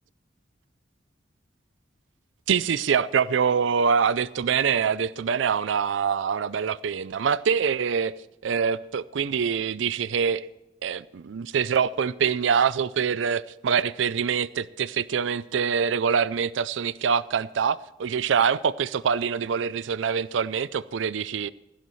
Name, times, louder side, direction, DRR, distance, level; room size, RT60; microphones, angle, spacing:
voice 1, 2.5-8.1 8.4-10.5 10.8-21.5, right 6 dB, 85° right, 0.4 m, -25 dB
17.0 x 15.0 x 3.1 m
head